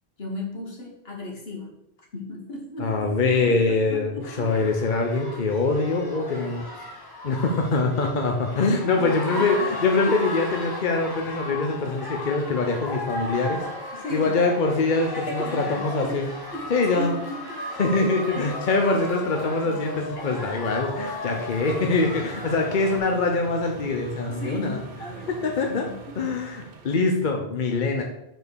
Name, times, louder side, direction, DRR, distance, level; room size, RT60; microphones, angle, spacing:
voice 1, 0.2-1.7 2.1-3.0 3.3-4.5 6.8-6.9 8.0-8.2 8.7-9.5 13.9-14.4 15.1-16.2 16.5-17.6 18.3-18.6 18.9-19.0 19.6-19.8 20.2-20.4 24.3-26.3, left 1 dB, 70° left, 0 dB, 1.7 m, -36 dB
voice 2, 2.8-4.1 4.4-6.6 7.2-13.6 14.1-16.2 16.7-17.1 17.8-24.8 25.4-25.9 26.2-28.0, left 3 dB, 50° left, 2 dB, 0.9 m, -24 dB
sound 1, 4.2-23.0, left 1 dB, 20° left, 1.2 m, -35 dB
sound 2, 21.5-26.9, right 6 dB, 50° right, 0.9 m, -43 dB
5.4 x 4.5 x 6.2 m, 0.82 s
omnidirectional pair, 1.1 m